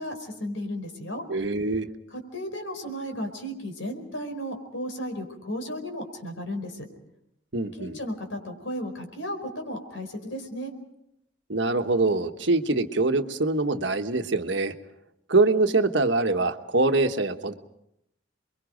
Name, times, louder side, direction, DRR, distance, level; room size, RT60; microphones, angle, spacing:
voice 1, 0.0-1.2 2.1-6.8 7.8-10.7, equal, 85° left, 5 dB, 4.8 m, -34 dB
voice 2, 1.3-1.9 7.5-8.0 11.5-14.7 15.3-17.5, right 3 dB, 65° right, 7 dB, 1.3 m, -24 dB
29.5 x 22.5 x 5.2 m, 0.81 s
head